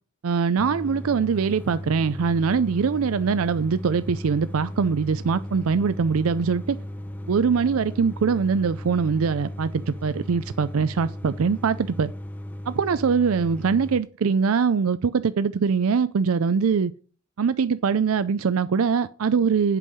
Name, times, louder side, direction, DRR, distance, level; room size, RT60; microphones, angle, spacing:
voice 1, 0.2-6.8 7.3-12.1 12.7-16.9 17.4-19.8, right 5 dB, 90° right, 0.5 m, -23 dB
sound 1, 0.6-14.0, left 1 dB, 10° left, 0.6 m, -36 dB
8.2 x 5.5 x 6.4 m
head